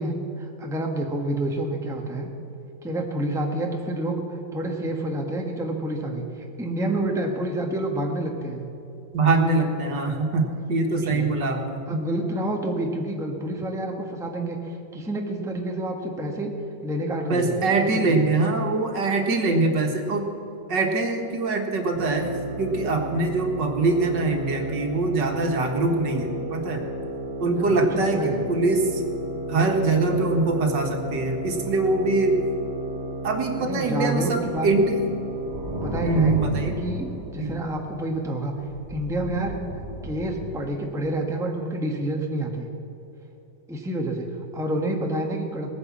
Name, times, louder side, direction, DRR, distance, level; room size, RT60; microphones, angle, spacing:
voice 1, 0.0-2.3 2.8-6.3 6.6-8.7 10.9-11.3 11.9-16.5 16.8-18.1 27.6-28.4 33.6-34.7 35.8-36.4 36.8-38.5 38.9-39.6 40.0-42.7 43.7-45.7, right 1 dB, ahead, 1 dB, 1.2 m, -28 dB
voice 2, 9.1-11.8 17.3-20.3 20.7-26.8 27.4-29.0 29.5-32.4 33.2-35.0 36.0-36.8 37.4-37.6, right 3 dB, 75° right, 3 dB, 2.1 m, -23 dB
sound 1, 21.9-36.5, right 1 dB, 55° right, 1.6 m, -33 dB
sound 2, 34.4-38.1 38.6-41.1, right 1 dB, 25° right, 1.7 m, -35 dB
18.5 x 9.7 x 7.4 m, 2.9 s
omnidirectional pair, 2.0 m